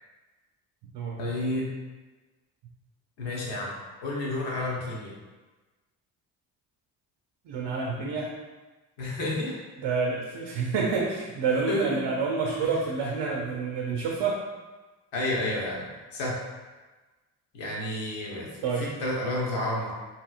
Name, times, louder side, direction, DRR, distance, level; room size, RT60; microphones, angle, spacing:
voice 1, 1.2-1.7 3.2-3.7 4.0-5.1 9.0-9.6 11.7-12.0 12.6-12.7 15.1-16.4 17.5-19.9, left 1 dB, 65° left, -4 dB, 1.1 m, -30 dB
voice 2, 7.5-8.4 9.8-14.4 18.6-18.9, right 4 dB, 60° right, -1 dB, 0.6 m, -28 dB
3.0 x 2.9 x 2.4 m, 1.2 s
hypercardioid pair, 50°, 47 cm